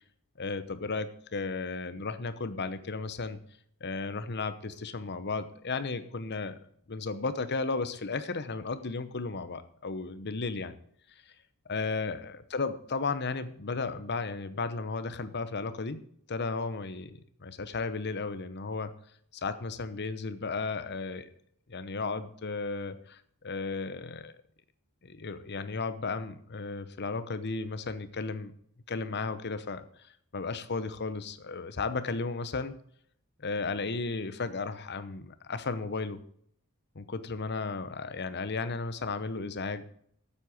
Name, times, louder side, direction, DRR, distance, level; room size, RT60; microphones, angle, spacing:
voice 1, 0.4-3.4 3.8-6.6 6.9-10.7 11.7-16.0 16.3-18.9 19.3-21.3 21.7-24.3 25.0-28.5 28.9-29.9 30.3-32.7 33.4-36.2 36.9-39.9, left 4 dB, 50° left, 12 dB, 0.9 m, -34 dB
8.9 x 7.8 x 8.1 m, 0.64 s
head